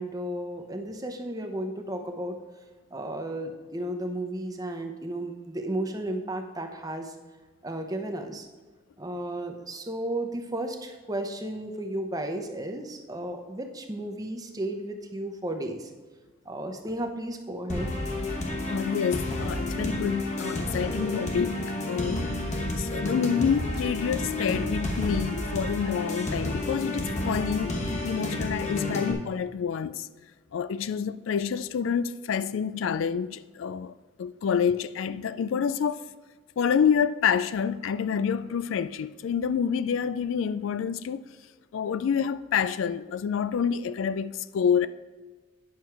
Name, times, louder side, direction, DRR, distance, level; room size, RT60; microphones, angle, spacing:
voice 1, 0.0-2.4 2.9-7.1 7.6-8.5 9.0-15.9 16.4-17.9, right 1 dB, 20° right, 0.8 m, -33 dB
sound 1, 17.7-29.1, left 1 dB, 35° left, 1.1 m, -30 dB
voice 2, 18.7-21.6 21.9-22.2 22.8-27.8 28.0-30.1 30.5-33.9 34.2-36.0 36.6-41.2 41.7-44.9, left 7 dB, 75° left, 0.3 m, -27 dB
9.6 x 6.2 x 4.6 m
head